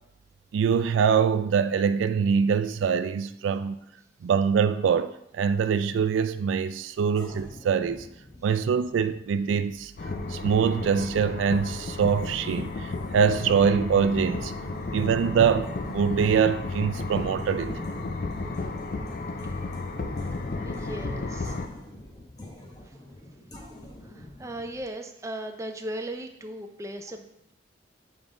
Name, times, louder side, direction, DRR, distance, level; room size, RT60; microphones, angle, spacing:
voice 1, 0.5-3.8 4.2-8.1 8.4-9.9 10.3-14.5 14.9-17.8, right 6 dB, 85° right, 0.3 m, -24 dB
sound 1, 7.1-24.8, left 1 dB, 20° left, 0.8 m, -48 dB
sound 2, 10.0-21.7, left 3 dB, 50° left, 0.5 m, -33 dB
voice 2, 20.6-21.6 22.8-22.9 24.0-27.5, right 1 dB, 15° right, 0.4 m, -38 dB
7.1 x 3.6 x 3.8 m
head